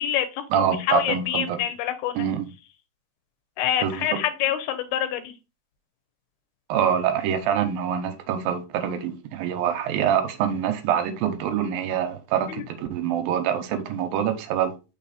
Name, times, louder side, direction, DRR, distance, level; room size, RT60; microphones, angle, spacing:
voice 1, 0.0-2.3 3.6-5.3 12.5-12.6, left 10 dB, 90° left, 2.7 m, -26 dB
voice 2, 0.5-1.6 2.2-2.5 3.8-4.1 6.7-14.7, right 9 dB, 80° right, 2.4 m, -25 dB
5.8 x 4.1 x 4.0 m
omnidirectional pair, 4.3 m